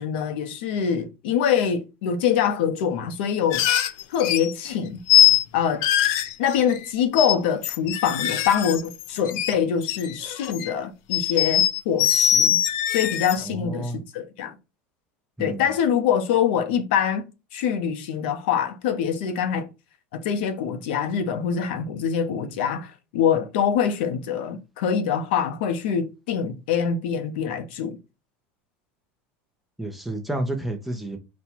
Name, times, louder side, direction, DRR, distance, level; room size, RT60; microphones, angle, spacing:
voice 1, 0.0-3.6 4.1-5.0 5.5-5.9 6.4-12.6 12.9-14.5 15.4-19.7 20.1-28.0, left 8 dB, 75° left, 0.8 m, -24 dB
sound 1, 3.5-4.5 5.1-5.4 5.8-6.8 7.2-7.4 7.6-9.5 9.8-10.7 11.1-13.4, left 11 dB, 55° left, 0.4 m, -22 dB
voice 2, 13.4-14.0 15.4-15.7 29.8-31.2, right 1 dB, ahead, 0.6 m, -30 dB
4.2 x 2.3 x 4.3 m
supercardioid pair, 165°, 6 cm